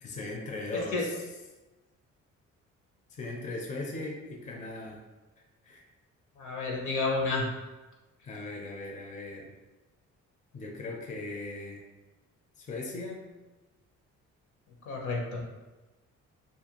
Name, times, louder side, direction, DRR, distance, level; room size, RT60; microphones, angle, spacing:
voice 1, 0.0-1.3 3.1-5.0 5.6-5.8 8.2-9.5 10.5-11.8 12.6-13.2, left 2 dB, 25° left, 0 dB, 0.4 m, -38 dB
voice 2, 6.4-7.5 14.9-15.4, left 3 dB, 75° left, -1 dB, 0.8 m, -30 dB
2.5 x 2.2 x 2.8 m, 1.1 s
cardioid pair, 90°, 30 cm